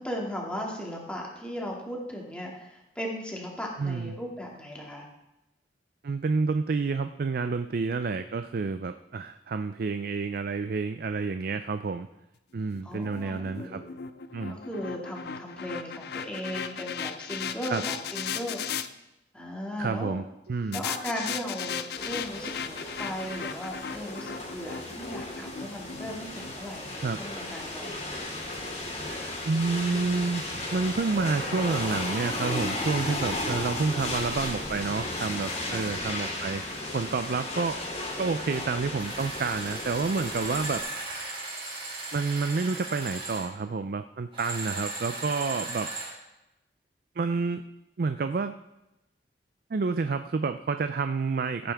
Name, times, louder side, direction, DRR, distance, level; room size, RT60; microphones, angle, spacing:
voice 1, 0.0-5.1 12.8-13.3 13.6-13.8 14.5-18.6 19.3-20.2 20.7-28.2 35.7-35.9, equal, 5° left, -2 dB, 2.2 m, -37 dB
voice 2, 3.8-4.1 6.0-12.1 12.5-13.8 14.3-14.6 17.7-17.8 19.8-20.8 27.0-27.2 29.4-36.6 36.9-37.9 38.2-40.8 42.1-45.9 47.2-47.6 48.0-48.6 49.7-51.7, right 4 dB, 55° right, 9 dB, 0.4 m, -29 dB
sound 1, 12.7-18.9 20.7-27.0, left 7 dB, 60° left, 0.5 m, -37 dB
sound 2, 22.0-40.8, left 2 dB, 35° left, 2.7 m, -35 dB
sound 3, 38.4-38.7 39.0-43.5 44.3-46.1, right 2 dB, 30° right, 3.0 m, -37 dB
15.5 x 9.0 x 3.5 m, 0.93 s
head